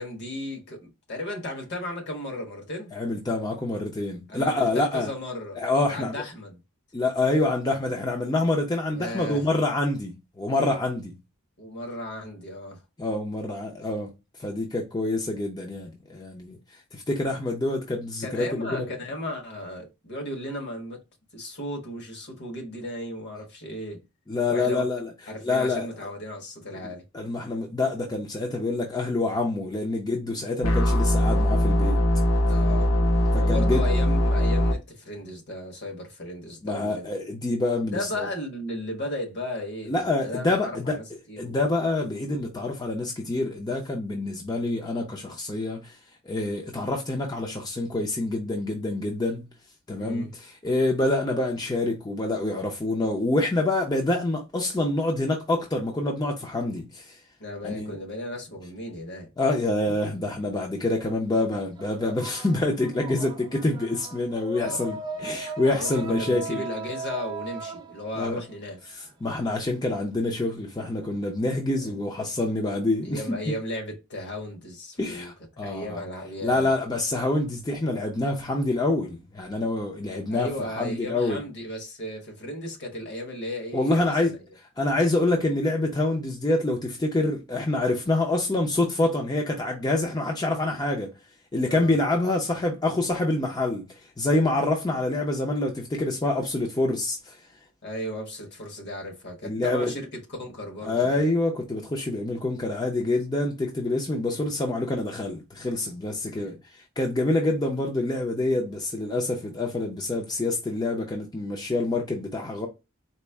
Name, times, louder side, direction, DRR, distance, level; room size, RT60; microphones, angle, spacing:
voice 1, 0.0-3.0 4.3-5.6 5.9-6.6 8.9-9.4 11.6-12.8 18.2-21.0 21.3-24.0 24.5-24.8 25.3-27.0 32.5-32.9 33.4-37.1 37.9-41.6 49.9-50.3 57.4-59.3 64.6-65.4 65.7-68.8 71.8-72.0 73.0-75.3 75.6-76.7 80.3-84.4 91.7-92.0 97.8-101.2 104.2-104.6 106.3-106.6, left 1 dB, 55° left, 1.2 m, -35 dB
voice 2, 2.9-5.1 5.6-6.2 6.9-11.1 13.0-14.1 14.4-16.6 16.9-18.9 24.3-25.1 25.4-25.9 27.1-32.0 33.3-33.8 36.6-38.3 39.9-41.0 41.4-46.0 46.3-49.4 49.9-57.2 57.6-58.0 59.4-66.6 68.2-68.4 68.9-73.4 75.0-76.0 76.4-81.4 83.7-84.4 84.8-91.1 91.5-97.4 99.4-99.9 100.8-112.7, left 2 dB, 20° left, 0.5 m, -26 dB
sound 1, 30.6-34.7, equal, 75° left, 0.7 m, -21 dB
sound 2, 59.7-61.0 61.3-69.1, right 3 dB, 20° right, 0.6 m, -38 dB
4.2 x 2.0 x 3.4 m
head